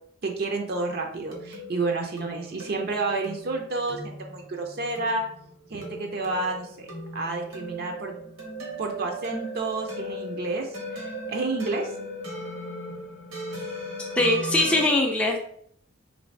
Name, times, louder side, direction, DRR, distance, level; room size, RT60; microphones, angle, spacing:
voice 1, 0.2-5.3 5.7-8.2 8.8-11.9, right 3 dB, 50° right, 3 dB, 0.5 m, -30 dB
sound 1, 0.7-14.9, equal, 90° right, 1.2 m, -38 dB
voice 2, 14.2-15.4, left 1 dB, 5° left, -1 dB, 0.4 m, -21 dB
3.1 x 2.6 x 3.2 m, 0.65 s
head